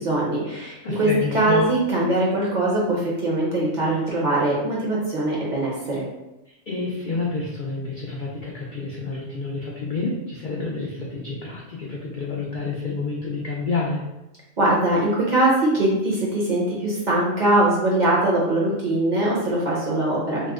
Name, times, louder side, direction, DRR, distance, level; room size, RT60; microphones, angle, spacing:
voice 1, 0.0-1.1 1.3-6.0 14.6-20.5, right 1 dB, 45° right, -5 dB, 0.7 m, -22 dB
voice 2, 0.8-1.7 6.7-14.0, left 3 dB, 65° left, -3 dB, 0.4 m, -28 dB
2.9 x 2.1 x 3.5 m, 0.95 s
omnidirectional pair, 1.3 m